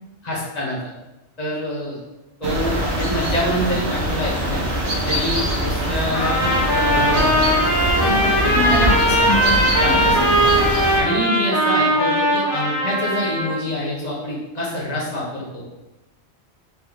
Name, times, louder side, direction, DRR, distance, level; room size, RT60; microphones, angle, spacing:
voice 1, 0.2-0.8 1.4-2.0 2.4-4.7 5.0-7.5 8.4-8.6 9.8-10.6 10.9-15.6, left 1 dB, 35° left, -6 dB, 1.4 m, -26 dB
sound 1, 2.4-11.0, right 1 dB, 70° right, 1.2 m, -23 dB
Trumpet, 6.1-13.6, equal, 50° left, 1.1 m, -19 dB
voice 2, 7.9-9.6 9.9-10.3, left 2 dB, 85° left, -6 dB, 1.9 m, -25 dB
4.2 x 3.2 x 3.8 m, 1.0 s
omnidirectional pair, 1.2 m